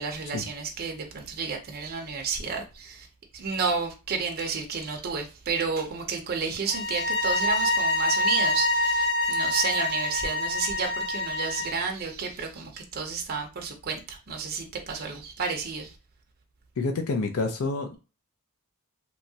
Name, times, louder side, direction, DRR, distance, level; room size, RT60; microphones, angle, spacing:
voice 1, 0.0-3.1 3.3-15.9, right 5 dB, 45° right, 0.5 m, -31 dB
sound 1, 6.7-11.8, left 1 dB, 25° left, 0.7 m, -26 dB
voice 2, 16.8-18.0, left 3 dB, 70° left, 0.5 m, -28 dB
3.0 x 2.3 x 2.7 m
head